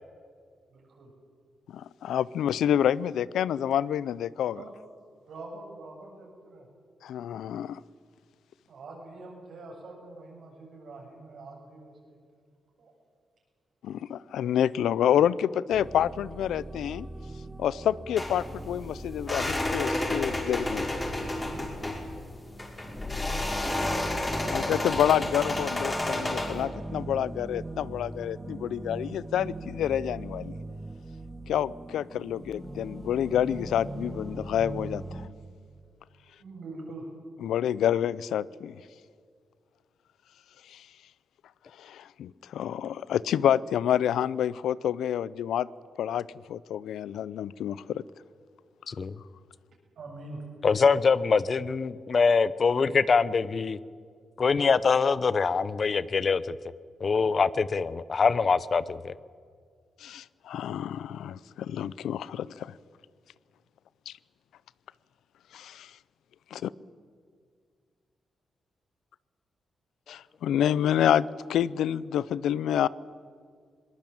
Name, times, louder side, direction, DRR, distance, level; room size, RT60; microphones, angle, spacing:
voice 1, 0.7-1.1 4.6-4.7 5.3-6.7 8.7-12.2 12.8-12.9 21.4-21.7 36.4-37.1 50.0-50.4, right 2 dB, 75° right, 0 dB, 7.9 m, -44 dB
voice 2, 1.7-4.6 7.0-7.8 13.8-17.1 17.6-20.9 24.5-30.6 31.5-35.3 37.4-38.8 40.7-40.9 41.8-45.7 46.0-48.0 60.0-62.7 64.1-64.2 65.5-65.9 66.5-66.7 70.1-72.9, left 10 dB, 90° left, 20 dB, 0.5 m, -28 dB
sound 1, 15.7-35.3, right 2 dB, 10° right, 1.8 m, -41 dB
sound 2, 18.2-26.6, left 1 dB, 25° left, 5.6 m, -31 dB
voice 3, 50.6-53.8 54.4-56.6 57.0-59.1, left 5 dB, 50° left, 17 dB, 0.8 m, -24 dB
21.5 x 19.5 x 8.8 m, 2.1 s
cardioid pair, 75°, 0 cm